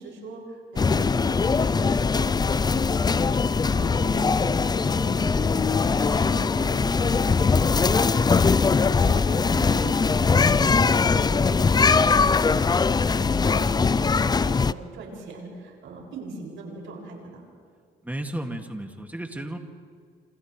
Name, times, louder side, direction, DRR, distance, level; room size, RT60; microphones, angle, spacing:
voice 1, 0.0-11.7 12.2-17.4, right 3 dB, 80° right, -1 dB, 6.2 m, -40 dB
sound 1, 0.8-14.7, left 4 dB, 20° left, 0.4 m, -21 dB
voice 2, 18.0-19.6, right 1 dB, 10° right, 3 dB, 2.2 m, -33 dB
28.5 x 27.5 x 3.3 m, 2.1 s
cardioid pair, 90°, 20 cm